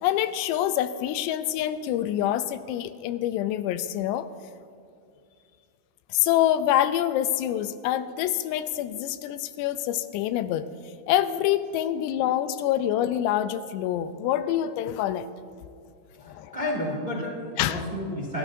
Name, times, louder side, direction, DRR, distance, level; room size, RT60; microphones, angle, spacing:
voice 1, 0.0-4.3 6.1-10.7 11.1-15.3 16.2-16.6 17.6-17.8, left 11 dB, 85° left, 12 dB, 2.7 m, -26 dB
voice 2, 16.2-18.4, left 1 dB, 15° right, -3 dB, 1.7 m, -31 dB
28.5 x 13.5 x 2.7 m, 2.3 s
omnidirectional pair, 4.9 m